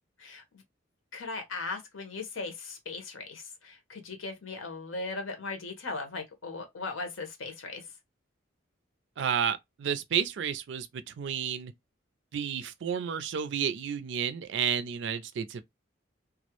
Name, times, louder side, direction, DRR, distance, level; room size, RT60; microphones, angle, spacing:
voice 1, 1.1-7.8, left 3 dB, 90° left, 0.8 m, -38 dB
voice 2, 9.2-11.7 12.3-15.6, right 8 dB, 65° right, 0.3 m, -31 dB
2.3 x 2.0 x 2.8 m
head